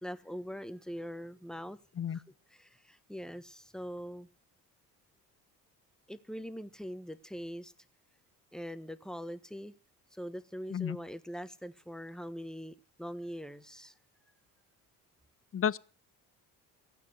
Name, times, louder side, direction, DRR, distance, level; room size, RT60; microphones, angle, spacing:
voice 1, 0.0-1.8 2.1-2.2 2.5-4.3 6.1-7.7 8.5-9.7 10.1-13.9, equal, ahead, 1.3 m, -42 dB
voice 2, 2.0-2.2 10.7-11.0 15.5-15.8, left 8 dB, 25° left, 0.7 m, -31 dB
16.0 x 9.1 x 7.8 m
hypercardioid pair, 50°, 50 cm